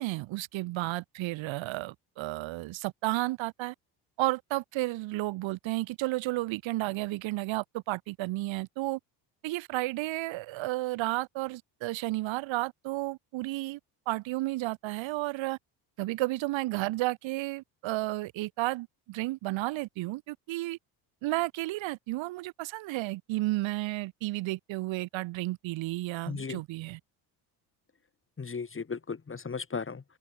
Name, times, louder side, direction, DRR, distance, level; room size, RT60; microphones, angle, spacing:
voice 1, 0.0-3.7 4.2-9.0 9.4-13.8 14.1-15.6 16.0-20.8 21.2-27.0, right 19 dB, 75° right, 6.0 m, -32 dB
voice 2, 26.3-26.6 28.4-30.0, left 5 dB, 25° left, 2.8 m, -36 dB
open air
supercardioid pair, 75°, 47 cm